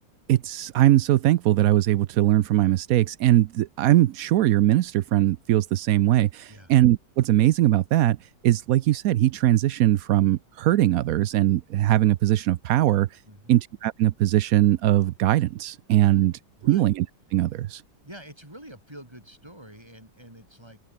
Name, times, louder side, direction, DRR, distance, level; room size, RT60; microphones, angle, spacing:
voice 1, 0.3-8.2 8.4-13.2 13.5-17.1 17.3-17.8, right 14 dB, 75° right, 0.8 m, -21 dB
voice 2, 13.2-13.6 16.2-16.3 16.6-16.8 18.0-20.8, right 1 dB, 10° right, 6.5 m, -46 dB
omnidirectional pair, 2.1 m